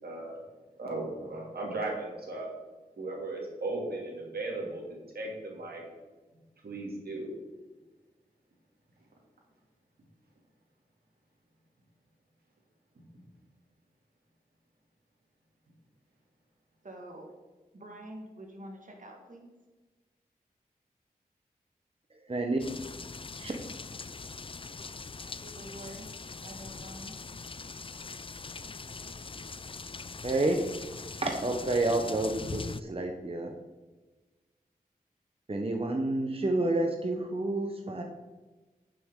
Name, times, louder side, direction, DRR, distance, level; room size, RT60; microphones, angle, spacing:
voice 1, 0.0-0.4 0.8-2.5 3.0-5.8 6.6-7.3, right 2 dB, 80° right, -2 dB, 2.7 m, -36 dB
voice 2, 16.8-17.3 17.7-19.5 25.2-26.1 26.4-27.1, right 1 dB, 55° right, 1 dB, 1.8 m, -46 dB
voice 3, 22.3-22.6 23.4-23.5 30.2-30.6 31.2-33.5 35.5-38.0, right 2 dB, 40° right, 3 dB, 1.0 m, -29 dB
sound 1, 22.6-32.8, left 4 dB, 35° left, 0.4 m, -42 dB
9.2 x 7.0 x 3.8 m, 1.2 s
cardioid pair, 40°, 16 cm